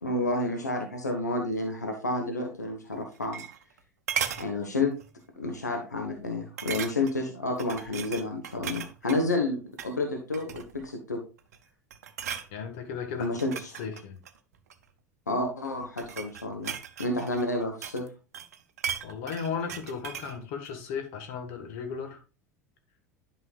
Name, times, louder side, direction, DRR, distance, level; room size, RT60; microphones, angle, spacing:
voice 1, 0.0-3.4 4.4-5.0 5.4-11.2 13.2-13.8 15.3-18.1, left 2 dB, 80° left, 3 dB, 1.2 m, -30 dB
sound 1, 2.9-3.8 4.1-4.5 5.0-5.2 5.5-5.6 6.6-7.2 7.6-9.2 9.7-9.9 10.3-10.9 11.4-11.6 11.9-12.5 13.2-14.8 15.6-18.1 18.3-20.4 20.6-20.7, right 8 dB, 65° right, 0.7 m, -36 dB
voice 2, 12.5-13.3 13.8-14.2 19.0-22.2, left 6 dB, 55° left, 5 dB, 1.6 m, -35 dB
11.0 x 5.7 x 2.4 m, 0.33 s
figure-of-eight pair, 75°, 9 cm